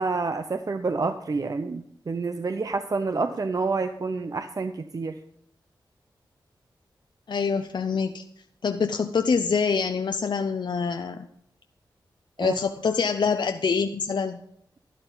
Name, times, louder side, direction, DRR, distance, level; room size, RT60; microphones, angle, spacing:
voice 1, 0.0-5.1 12.4-12.6, right 4 dB, 45° right, 9 dB, 0.6 m, -28 dB
voice 2, 7.3-8.2 8.6-11.3 12.4-14.4, left 5 dB, 65° left, 7 dB, 0.6 m, -25 dB
12.0 x 11.0 x 3.9 m, 0.73 s
cardioid pair, 65°, 8 cm